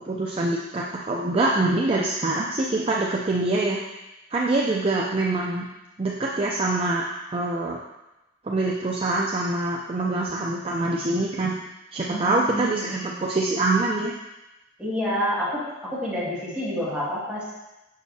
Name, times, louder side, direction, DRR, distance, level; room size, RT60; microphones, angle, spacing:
voice 1, 0.0-3.8 4.3-5.7 6.0-7.0 7.3-7.8 8.4-11.6 11.9-14.1, right 2 dB, 30° right, -2 dB, 0.5 m, -24 dB
voice 2, 4.7-5.3 12.1-13.3 14.8-17.6, equal, 5° right, -10 dB, 2.1 m, -29 dB
6.4 x 6.0 x 2.8 m, 0.98 s
head